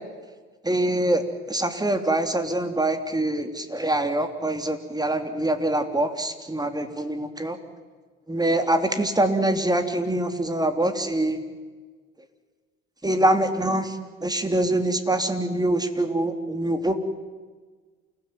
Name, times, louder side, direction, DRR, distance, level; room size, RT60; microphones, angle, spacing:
voice 1, 0.6-7.6 8.3-11.4 13.0-14.0 14.2-17.0, right 1 dB, 15° right, 7 dB, 3.3 m, -24 dB
28.5 x 17.0 x 9.3 m, 1.4 s
hypercardioid pair, 55°, 30 cm